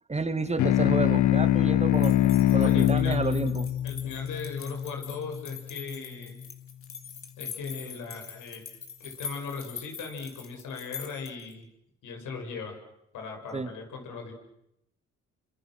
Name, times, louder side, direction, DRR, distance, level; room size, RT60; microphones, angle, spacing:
voice 1, 0.1-2.2 2.5-3.7 13.5-13.7, right 3 dB, 20° right, 10 dB, 2.0 m, -30 dB
sound 1, 0.6-5.4, left 12 dB, 70° left, 1.0 m, -24 dB
sound 2, 1.9-11.5, left 6 dB, 45° left, 3.6 m, -43 dB
voice 2, 2.6-3.2 3.8-6.4 7.4-8.6 9.0-11.7 12.0-12.8 13.1-14.3, left 5 dB, 85° left, 3 dB, 6.9 m, -38 dB
29.5 x 25.5 x 6.4 m, 0.82 s
cardioid pair, 90°, 30 cm